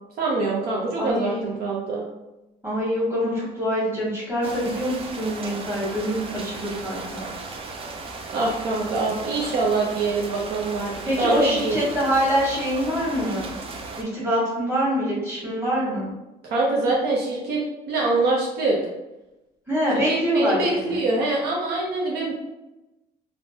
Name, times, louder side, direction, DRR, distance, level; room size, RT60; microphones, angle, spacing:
voice 1, 0.2-2.1 8.3-11.8 16.4-17.6 17.9-18.8 20.1-22.3, right 2 dB, 70° right, -3 dB, 0.7 m, -24 dB
voice 2, 1.0-1.4 2.6-7.3 11.0-13.6 14.0-16.1 19.7-21.0, equal, 15° right, -7 dB, 1.4 m, -25 dB
sound 1, 4.4-14.0, right 3 dB, 35° right, 0.4 m, -36 dB
3.1 x 2.1 x 2.7 m, 0.97 s
cardioid pair, 110°, 17 cm